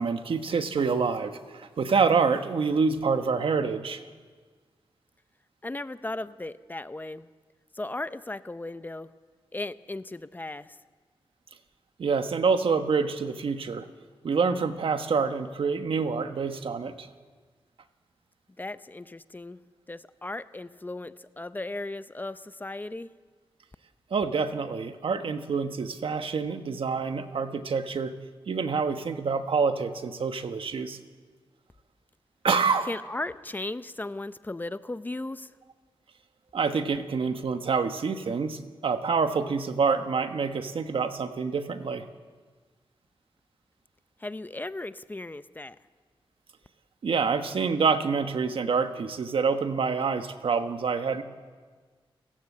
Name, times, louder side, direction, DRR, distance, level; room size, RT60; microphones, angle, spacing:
voice 1, 0.0-4.0 12.0-13.9 14.2-17.1 24.1-28.1 28.5-31.0 32.4-32.9 36.5-42.1 47.0-51.2, right 5 dB, 70° right, 8 dB, 1.4 m, -27 dB
voice 2, 5.6-7.3 7.7-9.1 9.5-10.8 18.6-19.6 19.9-23.1 32.9-35.5 44.2-45.8, left 2 dB, 20° left, 13 dB, 0.6 m, -36 dB
30.0 x 15.5 x 8.5 m, 1.5 s
wide cardioid pair, 120°, 9 cm